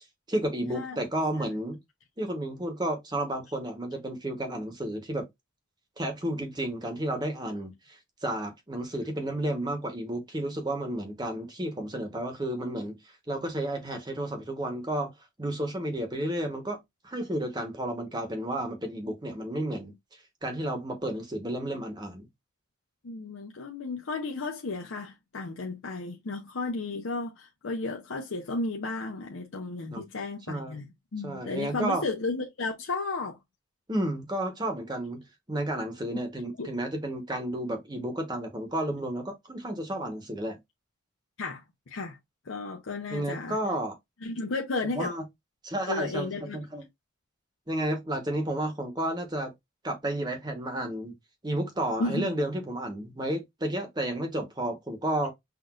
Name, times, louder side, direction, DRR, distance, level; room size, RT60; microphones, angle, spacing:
voice 1, 0.3-1.8 2.2-5.3 6.0-13.0 13.3-15.1 15.4-16.8 17.0-19.9 20.4-22.3 29.9-30.0 30.5-30.8 31.2-32.0 33.9-35.2 35.5-40.6 43.1-44.0 44.9-45.2 45.6-46.8 47.7-49.5 49.8-51.1 51.4-55.3, right 1 dB, 20° right, 0.9 m, -32 dB
voice 2, 23.0-33.4 36.6-36.7 41.4-42.2 42.4-43.6 44.2-45.2 45.9-46.6 52.0-52.3, left 3 dB, 80° left, 0.6 m, -33 dB
5.9 x 2.5 x 2.3 m
head